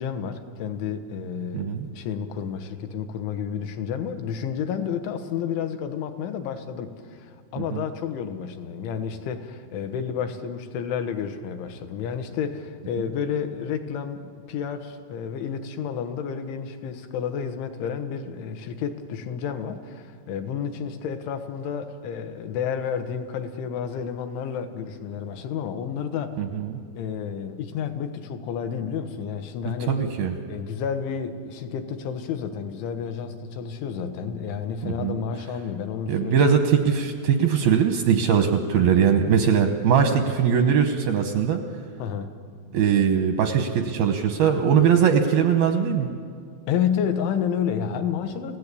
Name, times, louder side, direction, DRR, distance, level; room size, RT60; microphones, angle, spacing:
voice 1, 0.0-26.3 26.9-30.0 30.5-36.4 42.0-42.3 46.7-48.6, left 7 dB, 75° left, 7 dB, 3.4 m, -30 dB
voice 2, 1.5-1.9 7.6-7.8 26.4-26.8 29.9-30.3 34.8-35.2 36.1-41.6 42.7-46.1, right 7 dB, 80° right, 6 dB, 2.2 m, -21 dB
29.5 x 17.0 x 8.4 m, 2.3 s
omnidirectional pair, 5.9 m